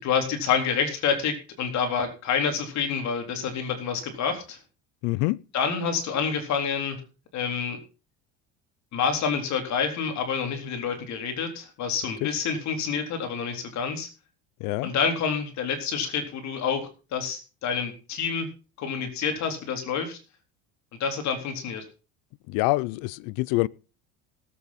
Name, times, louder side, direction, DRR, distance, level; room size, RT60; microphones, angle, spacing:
voice 1, 0.0-4.6 5.5-7.0 7.3-7.8 8.9-14.1 14.8-18.5 18.8-20.2 21.0-21.8, left 6 dB, 55° left, 3.8 m, -28 dB
voice 2, 5.0-5.4 14.6-14.9 22.5-23.7, left 21 dB, 70° left, 0.7 m, -25 dB
18.0 x 8.6 x 4.2 m
cardioid pair, 120°, 34 cm